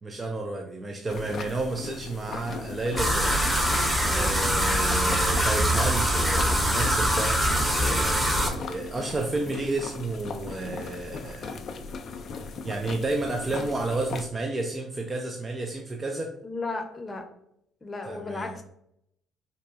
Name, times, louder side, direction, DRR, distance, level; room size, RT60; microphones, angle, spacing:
voice 1, 0.0-3.4 4.1-7.4 7.8-11.6 12.6-16.4 18.0-18.6, right 2 dB, 30° right, 3 dB, 0.4 m, -31 dB
sound 1, 1.1-14.3, left 4 dB, 55° left, 0.3 m, -38 dB
sound 2, 3.0-8.5, equal, 15° right, 0.8 m, -23 dB
voice 2, 16.4-17.2 17.8-18.6, left 3 dB, 30° left, 4 dB, 0.7 m, -34 dB
3.8 x 2.3 x 2.4 m, 0.75 s
hypercardioid pair, 55°, 0 cm